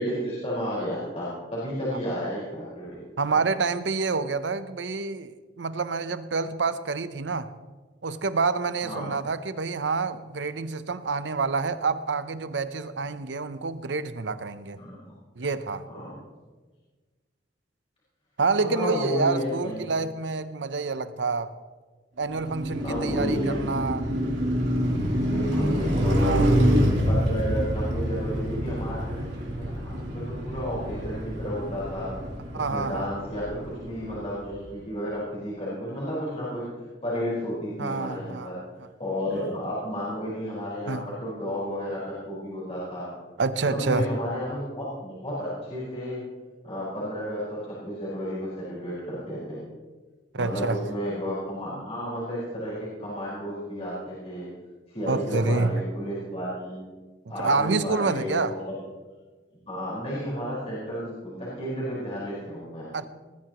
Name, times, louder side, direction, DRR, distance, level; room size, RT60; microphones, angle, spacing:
voice 1, 0.0-3.0 8.8-9.1 14.8-15.1 15.9-16.1 18.6-19.8 22.8-23.6 25.2-26.7 27.1-32.1 32.5-36.6 37.0-38.5 39.0-43.1 43.6-46.2 46.6-49.6 50.3-54.5 54.9-56.8 57.3-58.6 59.7-62.8, equal, 35° left, 4.8 m, -32 dB
voice 2, 3.2-7.5 8.0-14.8 15.4-15.8 18.4-21.5 22.2-24.1 26.2-26.6 32.5-33.1 37.8-38.5 39.3-39.4 40.9-41.1 43.4-44.1 50.3-50.8 55.1-55.8 57.4-58.6 62.9-63.1, right 4 dB, 90° right, 0.7 m, -28 dB
Car passing by, 22.3-34.5, equal, 70° right, 3.5 m, -26 dB
20.0 x 14.0 x 3.0 m
head